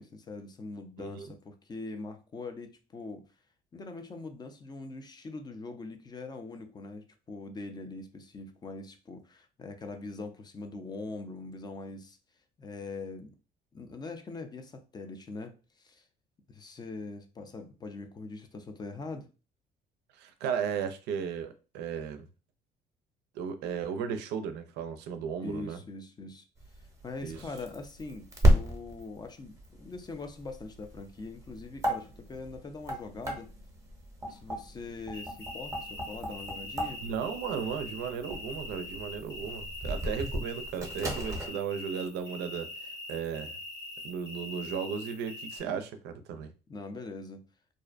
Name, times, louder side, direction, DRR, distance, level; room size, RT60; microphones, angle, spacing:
voice 1, 0.0-3.2 3.7-12.2 12.6-13.3 13.7-16.0 16.5-19.3 25.4-26.4 26.8-33.5 34.3-37.0 46.7-47.4, left 3 dB, 25° left, 0.4 m, -42 dB
voice 2, 20.2-22.3 23.3-25.8 27.2-27.4 37.0-43.6 44.0-46.5, right 7 dB, 85° right, 0.4 m, -35 dB
sound 1, 26.6-41.5, equal, 20° right, 0.7 m, -33 dB
sound 2, 35.1-45.6, left 2 dB, 75° left, 0.9 m, -43 dB
2.5 x 2.1 x 2.4 m
cardioid pair, 110°, 17 cm